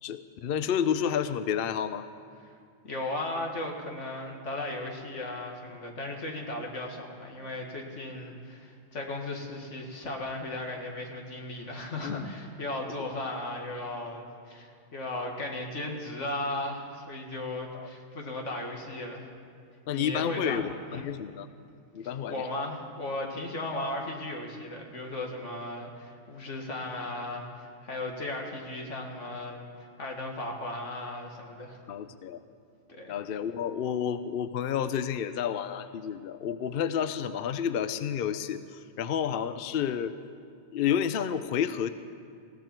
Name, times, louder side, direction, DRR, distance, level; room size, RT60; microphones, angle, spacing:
voice 1, 0.0-2.1 12.0-12.3 17.7-17.9 19.9-21.5 21.9-22.4 31.9-32.4 33.1-40.1 40.7-41.9, left 8 dB, 60° left, 11 dB, 0.7 m, -30 dB
voice 2, 2.8-19.3 19.9-21.1 22.3-31.8 32.9-33.2, left 2 dB, 90° left, 1 dB, 2.2 m, -36 dB
20.0 x 16.0 x 4.6 m, 2.3 s
omnidirectional pair, 1.2 m